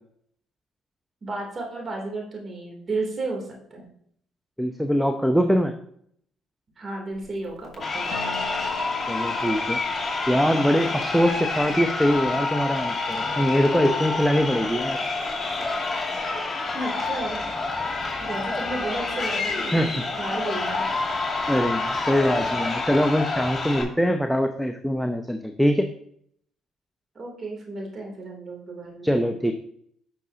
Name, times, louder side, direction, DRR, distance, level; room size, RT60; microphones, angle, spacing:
voice 1, 1.2-3.9 6.8-8.4 13.0-13.1 13.7-14.0 16.1-16.4 16.7-17.4 18.2-19.8 20.2-20.8 27.1-29.1, right 2 dB, 40° right, -1 dB, 2.9 m, -33 dB
voice 2, 4.6-5.7 9.1-9.8 10.3-15.0 19.7-20.1 21.5-25.9 29.0-29.5, equal, ahead, 6 dB, 0.6 m, -23 dB
Crowd, 7.7-23.8, left 3 dB, 20° left, 2.3 m, -28 dB
sound 1, 8.1-11.9, left 4 dB, 85° left, 0.9 m, -42 dB
9.9 x 6.0 x 2.8 m, 0.67 s
supercardioid pair, 70°, 0 cm